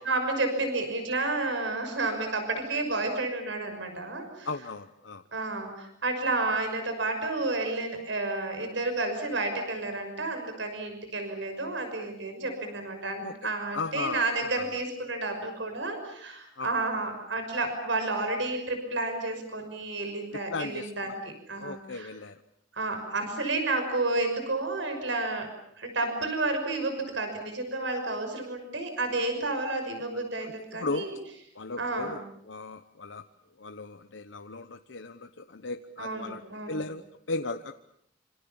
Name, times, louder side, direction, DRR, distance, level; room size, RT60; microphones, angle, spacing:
voice 1, 0.0-4.5 5.3-22.1 22.7-25.5 25.8-31.2 31.8-32.2 36.0-36.8, right 2 dB, 75° right, 6 dB, 6.1 m, -31 dB
voice 2, 4.4-5.2 13.2-13.3 13.7-14.7 16.6-16.7 20.5-20.9 21.6-22.3 30.4-30.5 30.8-31.1 31.6-32.2 32.5-33.2 33.6-36.4 36.7-37.0 37.3-37.7, left 3 dB, 75° left, 7 dB, 1.0 m, -36 dB
27.0 x 26.5 x 7.1 m, 0.72 s
head